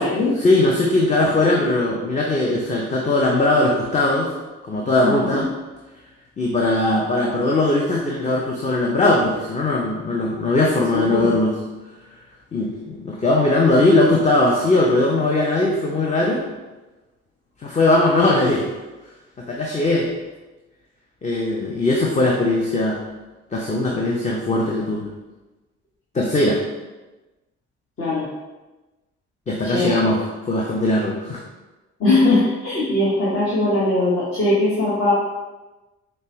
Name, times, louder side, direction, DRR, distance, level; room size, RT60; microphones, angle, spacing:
voice 1, 0.4-4.3 4.6-5.5 6.4-11.5 12.5-16.4 17.6-18.7 19.4-20.1 21.2-23.0 23.5-25.1 26.1-26.6 29.5-31.4, left 2 dB, 20° left, -2 dB, 0.6 m, -19 dB
voice 2, 5.0-5.4 10.9-11.3 28.0-28.3 29.6-30.0 32.0-35.1, left 2 dB, 40° left, -7 dB, 1.0 m, -20 dB
5.2 x 2.0 x 3.0 m, 1.1 s
figure-of-eight pair, 45°, 35 cm